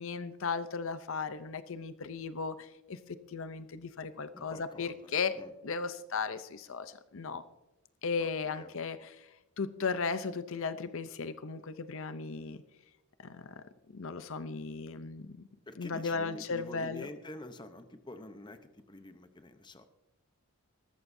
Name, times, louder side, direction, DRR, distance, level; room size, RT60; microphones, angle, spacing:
voice 1, 0.0-7.4 8.0-9.3 9.6-12.6 13.2-13.6 13.9-15.5 15.8-17.1, left 5 dB, 60° left, 12 dB, 0.6 m, -36 dB
voice 2, 4.3-5.1 5.3-5.5 8.2-8.7 15.7-18.6 18.9-19.8, left 1 dB, 20° left, 9 dB, 0.8 m, -47 dB
19.5 x 14.0 x 2.7 m, 1.0 s
head